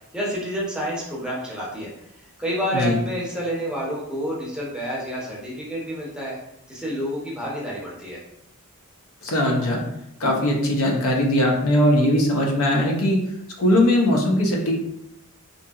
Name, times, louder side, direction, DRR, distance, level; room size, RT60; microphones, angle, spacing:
voice 1, 0.1-1.9 2.4-6.4 6.7-8.2, equal, 5° right, -5 dB, 0.6 m, -29 dB
voice 2, 9.2-9.8 10.2-13.2 13.6-14.7, left 1 dB, 70° left, 0 dB, 0.5 m, -20 dB
2.7 x 2.6 x 2.3 m, 0.79 s
head